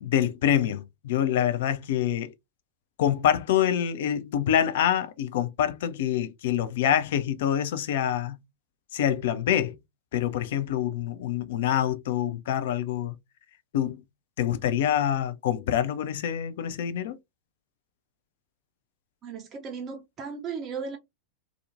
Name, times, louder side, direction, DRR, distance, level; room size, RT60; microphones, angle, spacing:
voice 1, 0.0-2.3 3.0-8.4 8.9-9.8 10.1-13.1 13.7-14.0 14.4-17.2, left 10 dB, 55° left, 0.3 m, -26 dB
voice 2, 19.2-21.0, right 5 dB, 30° right, 0.4 m, -36 dB
2.5 x 2.1 x 2.5 m
figure-of-eight pair, 90°, 0 cm